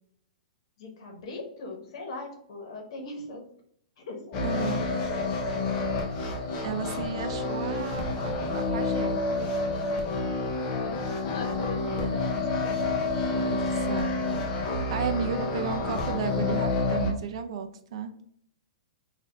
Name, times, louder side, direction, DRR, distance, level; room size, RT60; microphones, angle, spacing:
voice 1, 0.8-3.4 4.0-5.3 10.7-12.9, left 3 dB, 45° left, 3 dB, 1.1 m, -40 dB
sound 1, 4.3-17.1, left 3 dB, 20° left, 0.6 m, -29 dB
voice 2, 4.4-4.8 6.6-8.0 8.5-9.2 13.3-18.1, right 6 dB, 45° right, 8 dB, 0.4 m, -34 dB
4.2 x 2.6 x 3.7 m, 0.66 s
hypercardioid pair, 180°, 4 cm